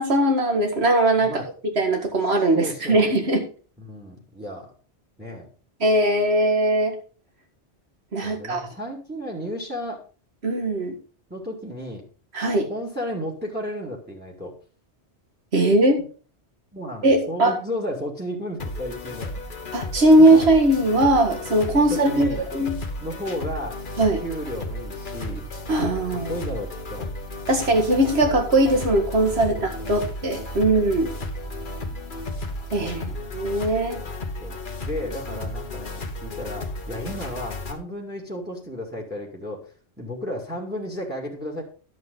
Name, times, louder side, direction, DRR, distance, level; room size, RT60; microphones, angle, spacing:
voice 1, 0.0-1.4 1.8-3.5 5.8-6.9 8.1-8.6 10.4-11.0 12.3-12.7 15.5-16.0 17.0-17.6 19.7-22.8 24.0-24.2 25.7-26.3 27.5-31.1 32.7-34.0, right 1 dB, 65° right, 4 dB, 2.1 m, -20 dB
voice 2, 2.5-3.0 3.8-4.7 5.2-5.5 8.2-10.0 11.3-12.0 12.7-14.5 16.7-19.4 20.1-20.5 21.9-22.4 23.0-23.8 24.2-25.5 26.1-27.1 27.6-27.7 29.5-30.0 30.6-31.1 32.8-33.4 33.9-34.1 34.4-41.6, equal, 10° right, 0 dB, 2.1 m, -34 dB
sound 1, 18.6-37.7, left 1 dB, 50° left, 1.4 m, -33 dB
11.0 x 7.8 x 3.9 m, 0.38 s
omnidirectional pair, 1.2 m